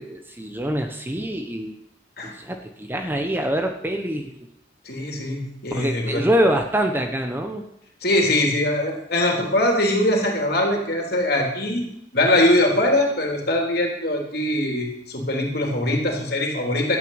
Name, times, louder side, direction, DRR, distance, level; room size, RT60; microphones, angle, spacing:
voice 1, 0.0-1.7 2.2-4.3 5.7-7.6, equal, 10° right, 4 dB, 1.0 m, -25 dB
voice 2, 4.8-6.2 8.0-11.9 12.1-17.0, left 1 dB, 55° left, 1 dB, 3.5 m, -22 dB
12.5 x 9.3 x 8.9 m, 0.76 s
head